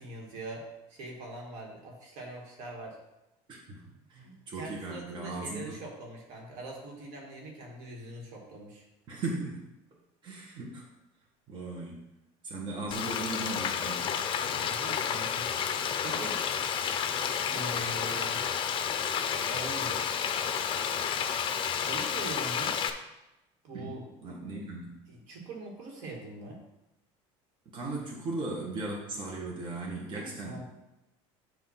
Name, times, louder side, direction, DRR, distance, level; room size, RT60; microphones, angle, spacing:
voice 1, 0.0-3.0 4.2-8.8 14.4-15.5 16.0-16.4 17.5-18.4 19.5-20.1 21.7-22.8 23.6-24.0 25.1-26.6 30.2-30.6, right 2 dB, 65° right, -1 dB, 1.9 m, -42 dB
voice 2, 3.5-5.8 9.1-9.7 10.2-10.9 11.5-12.0 12.4-14.2 23.7-23.9 24.2-25.0 27.7-30.6, right 2 dB, 35° right, -3 dB, 1.5 m, -37 dB
Frying (food), 12.9-22.9, left 8 dB, 40° left, 0.6 m, -31 dB
7.7 x 3.0 x 5.7 m, 0.94 s
supercardioid pair, 125°, 14 cm